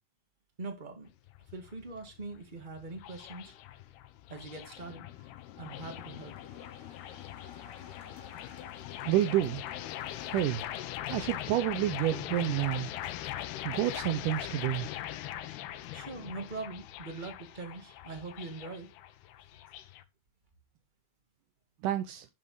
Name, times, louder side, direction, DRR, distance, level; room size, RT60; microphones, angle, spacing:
voice 1, 0.6-1.1 1.5-3.5 4.3-6.4 15.4-18.9, right 3 dB, 30° right, 0.9 m, -43 dB
sound 1, 1.1-20.0, left 13 dB, 90° left, 3.0 m, -41 dB
sound 2, 5.1-12.0, left 4 dB, 50° left, 3.9 m, -56 dB
voice 2, 9.0-9.6 10.3-10.6 11.1-12.9 13.6-14.9 21.8-22.3, right 14 dB, 85° right, 1.8 m, -29 dB
11.0 x 7.5 x 3.9 m
omnidirectional pair, 4.5 m